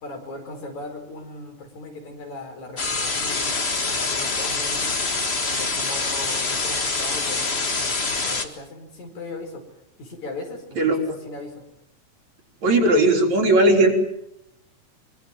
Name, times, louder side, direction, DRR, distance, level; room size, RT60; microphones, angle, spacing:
voice 1, 0.0-5.0 5.5-9.6 10.0-11.5, left 2 dB, 75° left, 4 dB, 6.3 m, -38 dB
sound 1, 2.8-8.5, left 3 dB, 25° left, 1.6 m, -25 dB
voice 2, 12.6-13.9, right 2 dB, 70° right, 1 dB, 5.2 m, -17 dB
24.5 x 24.0 x 7.7 m, 0.81 s
omnidirectional pair, 3.4 m